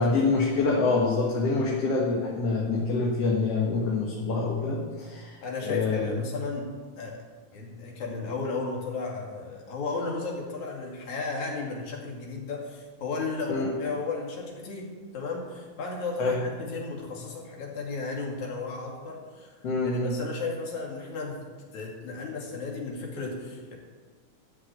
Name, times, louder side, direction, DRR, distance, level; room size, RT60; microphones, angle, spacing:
voice 1, 0.0-5.4 5.6-6.1 13.5-13.7 16.2-16.4 19.6-20.2, left 3 dB, 55° left, -3 dB, 2.6 m, -26 dB
voice 2, 5.4-6.7 7.0-7.2 7.5-19.5 19.8-21.4 21.7-23.8, left 3 dB, 75° left, -1 dB, 3.8 m, -34 dB
13.5 x 6.3 x 8.8 m, 1.5 s
omnidirectional pair, 3.4 m